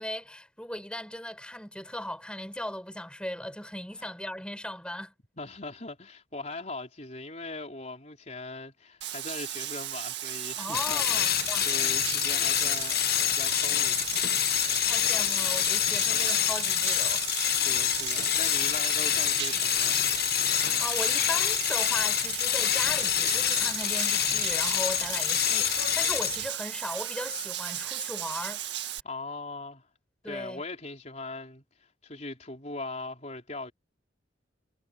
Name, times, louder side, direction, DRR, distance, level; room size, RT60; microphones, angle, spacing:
voice 1, 0.0-5.1 10.6-11.7 14.8-17.3 20.5-28.6 30.2-30.6, left 1 dB, 5° left, 7.3 m, -38 dB
voice 2, 5.4-11.3 11.6-13.0 13.3-14.2 15.8-16.2 17.5-20.0 29.0-29.9 30.3-33.7, left 2 dB, 40° left, 4.2 m, -40 dB
Bathtub (filling or washing), 9.0-29.0, right 12 dB, 65° right, 2.0 m, -36 dB
sound 1, 10.7-26.5, left 12 dB, 55° left, 0.9 m, -26 dB
head